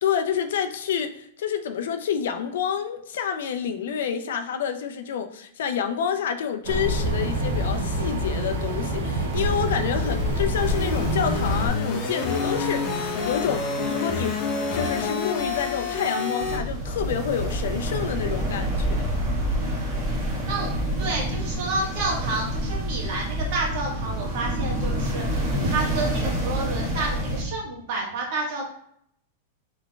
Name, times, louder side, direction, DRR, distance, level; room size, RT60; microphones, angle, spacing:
voice 1, 0.0-14.4 14.7-19.1, left 8 dB, 80° left, 8 dB, 0.4 m, -28 dB
sound 1, 6.6-11.7, equal, 85° right, 0.8 m, -26 dB
sound 2, 9.3-16.6, left 4 dB, 35° left, 0.9 m, -28 dB
sound 3, 16.4-27.4, right 1 dB, 25° right, 1.3 m, -27 dB
voice 2, 19.1-19.9 20.4-20.7 21.0-28.6, right 2 dB, 55° right, -2 dB, 1.5 m, -30 dB
3.7 x 3.4 x 2.3 m, 0.69 s
supercardioid pair, 150°, 0 cm